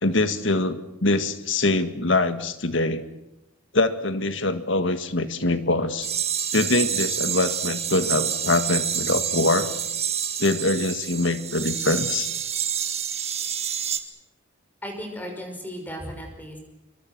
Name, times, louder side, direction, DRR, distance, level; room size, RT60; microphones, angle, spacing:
voice 1, 0.0-3.0 3.7-6.1 6.5-9.7 10.4-12.3, left 2 dB, 70° left, 10 dB, 1.9 m, -23 dB
sound 1, 6.0-14.0, right 9 dB, 30° right, 1.8 m, -28 dB
voice 2, 14.8-16.6, equal, 10° left, 3 dB, 5.5 m, -35 dB
25.5 x 23.5 x 6.2 m, 0.95 s
head